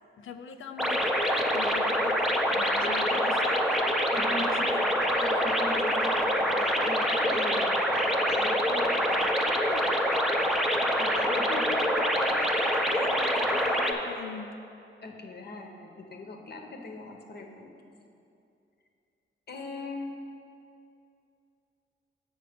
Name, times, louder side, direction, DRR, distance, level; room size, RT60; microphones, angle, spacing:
voice 1, 0.2-2.2 2.6-3.8 4.4-4.8 9.7-10.2 11.5-14.5, left 6 dB, 75° left, 7 dB, 0.5 m, -41 dB
sound 1, 0.8-13.9, equal, ahead, 0.6 m, -26 dB
voice 2, 4.1-4.5 5.1-9.5 11.0-11.6 15.0-17.7 19.5-20.2, left 2 dB, 50° left, 3 dB, 0.9 m, -41 dB
7.1 x 5.9 x 5.0 m, 2.6 s
cardioid pair, 95°, 21 cm